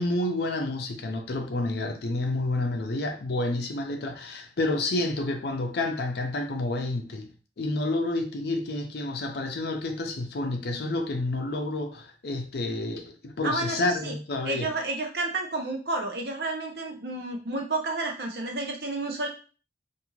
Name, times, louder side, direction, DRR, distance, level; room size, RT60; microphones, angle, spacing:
voice 1, 0.0-7.3 7.6-14.7, left 2 dB, 65° left, 0.5 m, -29 dB
voice 2, 13.4-14.1 14.4-19.3, right 2 dB, 60° right, 0.7 m, -31 dB
2.5 x 2.4 x 3.0 m
head